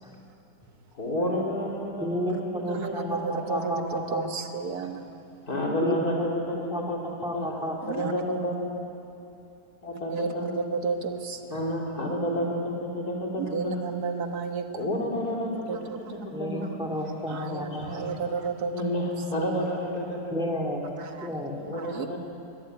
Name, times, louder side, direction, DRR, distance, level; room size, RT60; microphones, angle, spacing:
voice 1, 0.9-3.1 3.4-4.0 5.5-7.0 7.3-8.5 9.8-10.5 11.5-13.8 14.7-16.6 17.7-18.1 18.7-20.3 20.7-20.8 21.6-22.2, equal, 70° left, -2 dB, 4.4 m, -30 dB
voice 2, 2.0-4.3 5.8-6.0 6.3-7.8 16.3-18.1 20.3-20.8 21.2-21.6, left 1 dB, 5° right, 0 dB, 2.7 m, -32 dB
voice 3, 2.7-5.2 7.8-8.1 10.1-11.6 13.4-14.8 15.7-16.3 17.3-18.7 21.0-21.3 21.7-22.2, right 5 dB, 75° right, 6 dB, 1.9 m, -33 dB
22.0 x 20.5 x 9.3 m, 2.8 s
omnidirectional pair, 1.7 m